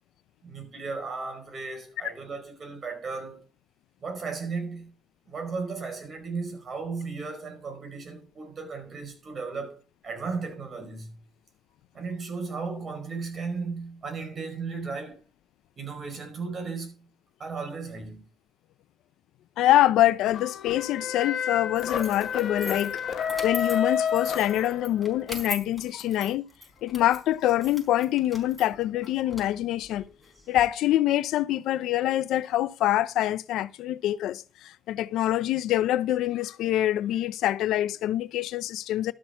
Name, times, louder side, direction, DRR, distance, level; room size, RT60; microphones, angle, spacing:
voice 1, 0.4-3.4 4.0-4.9 5.2-11.2 11.9-15.2 15.8-17.1 17.4-18.3, right 4 dB, 45° right, 4.9 m, -35 dB
voice 2, 19.6-23.0 23.4-26.5 26.8-30.1 30.5-39.1, left 13 dB, 85° left, 0.6 m, -25 dB
sound 1, 20.3-25.1, left 7 dB, 65° left, 1.7 m, -30 dB
sound 2, 21.7-30.6, left 1 dB, 5° right, 4.5 m, -42 dB
12.5 x 6.2 x 5.8 m
cardioid pair, 90°, 0 cm